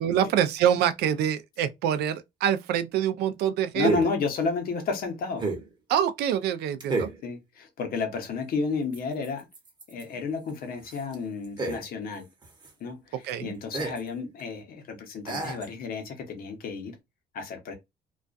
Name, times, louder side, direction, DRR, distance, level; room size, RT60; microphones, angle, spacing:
voice 1, 0.0-3.9 5.9-7.1 13.2-13.5, right 9 dB, 75° right, 0.4 m, -25 dB
sound 1, 1.0-1.1 3.8-4.2 5.4-5.7 6.8-7.3 8.9-10.1 10.5-10.6 10.8-12.1 12.4-12.7 13.3-13.4 13.7-14.1 14.4-14.5 15.3-15.7, right 3 dB, 25° right, 0.8 m, -31 dB
voice 2, 3.7-5.5 7.2-9.5 9.9-12.2 12.8-13.1 13.4-16.9 17.3-17.7, left 4 dB, 60° left, 0.9 m, -31 dB
2.4 x 2.2 x 2.4 m
cardioid pair, 110°, 17 cm